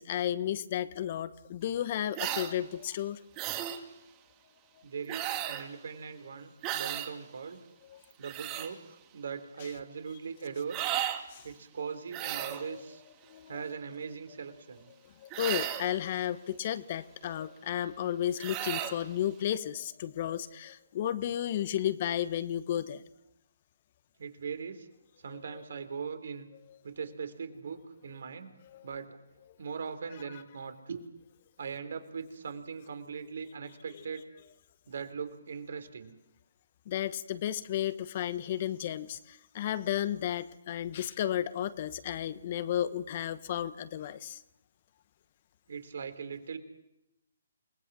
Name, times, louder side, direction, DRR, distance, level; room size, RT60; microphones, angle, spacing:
voice 1, 0.0-3.2 5.7-5.8 6.7-6.8 7.9-8.0 11.3-11.4 12.4-12.8 13.3-13.6 15.2-23.0 25.5-25.6 28.7-28.9 36.9-44.4, left 11 dB, 40° left, 14 dB, 1.1 m, -33 dB
sound 1, 2.1-2.5 3.4-3.8 5.1-5.7 6.6-7.1 8.0-8.7 10.7-11.2 12.1-12.7 15.3-15.9 18.4-19.0, right 12 dB, 25° right, 2.2 m, -34 dB
voice 2, 4.8-7.6 8.2-10.8 11.4-13.0 13.5-14.9 24.2-24.9 25.2-26.5 26.8-28.5 28.8-29.2 29.6-31.0 31.6-34.2 34.9-36.2 45.7-46.6, right 6 dB, 60° right, 9 dB, 3.6 m, -40 dB
29.0 x 20.5 x 6.2 m, 0.88 s
figure-of-eight pair, 140°, 0 cm